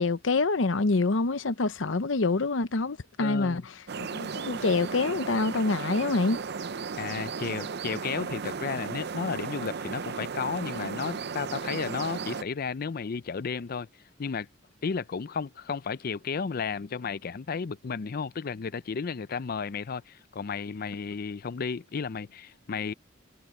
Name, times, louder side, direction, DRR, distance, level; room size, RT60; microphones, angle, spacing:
voice 1, 0.0-3.6 4.0-6.4, left 3 dB, 75° left, 0.8 m, -26 dB
voice 2, 3.2-3.7 7.0-13.9 14.2-14.5 14.8-22.9, left 5 dB, 50° left, 0.5 m, -33 dB
sound 1, 3.9-12.4, right 5 dB, 60° right, 0.6 m, -35 dB
head